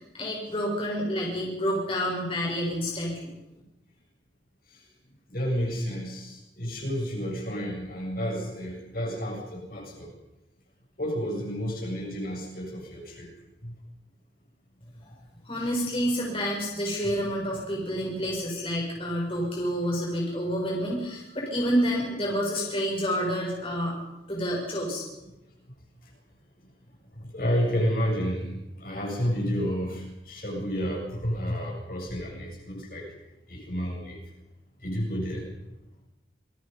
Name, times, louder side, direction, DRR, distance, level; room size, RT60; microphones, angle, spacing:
voice 1, 0.0-3.3 15.0-15.2 15.5-24.0 24.3-25.0, equal, 30° left, -2 dB, 6.9 m, -29 dB
voice 2, 5.3-10.1 11.0-13.3 13.6-13.7 27.1-33.1 33.5-34.2 34.8-35.5, equal, 50° left, 0 dB, 7.4 m, -31 dB
27.5 x 22.5 x 5.5 m, 0.95 s
head